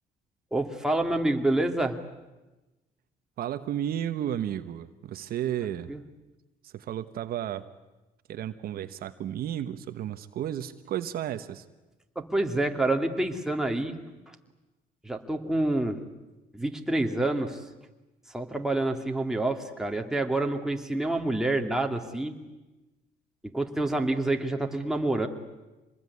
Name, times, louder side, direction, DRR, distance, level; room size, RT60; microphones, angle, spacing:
voice 1, 0.5-2.0 5.9-6.0 12.2-14.0 15.0-16.0 16.5-17.6 18.3-22.3 23.5-25.3, right 2 dB, 5° right, 3 dB, 2.4 m, -27 dB
voice 2, 3.4-5.9 6.6-7.6 8.3-11.6, right 11 dB, 65° right, 10 dB, 1.2 m, -33 dB
25.5 x 20.5 x 9.7 m, 1.1 s
cardioid pair, 110°, 17 cm